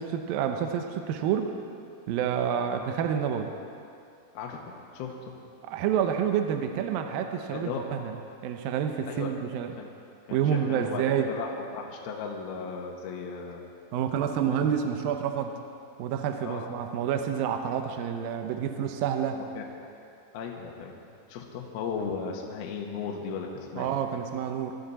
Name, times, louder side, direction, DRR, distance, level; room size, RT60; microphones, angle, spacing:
voice 1, 0.0-1.5 2.1-3.5 5.6-8.1 8.4-9.7 10.3-11.3 13.9-15.5 16.0-19.4 23.8-24.8, right 8 dB, 75° right, 6 dB, 2.3 m, -28 dB
voice 2, 4.9-5.3 7.5-7.9 9.1-9.3 9.8-9.9 10.3-13.6 16.4-16.7 19.3-19.7 20.3-24.0, left 5 dB, 70° left, 0 dB, 2.9 m, -36 dB
22.0 x 12.5 x 4.1 m, 2.5 s
omnidirectional pair, 4.8 m